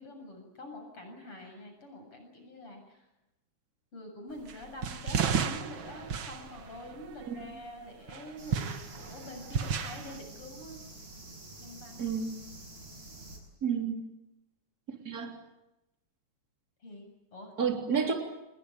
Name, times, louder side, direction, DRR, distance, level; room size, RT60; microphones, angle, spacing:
voice 1, 0.0-3.1 3.9-10.8 11.6-12.2 16.8-17.5, left 1 dB, 45° left, 4 dB, 8.3 m, -46 dB
sound 1, 4.5-7.5 8.1-10.2, right 7 dB, 50° right, 1.8 m, -33 dB
sound 2, 8.4-13.4, right 2 dB, 70° right, 8.9 m, -48 dB
voice 2, 12.0-12.3 13.6-14.0 15.1-15.3 17.6-18.1, right 6 dB, 30° right, 2 dB, 3.8 m, -29 dB
28.0 x 20.0 x 9.2 m, 0.95 s
omnidirectional pair, 3.4 m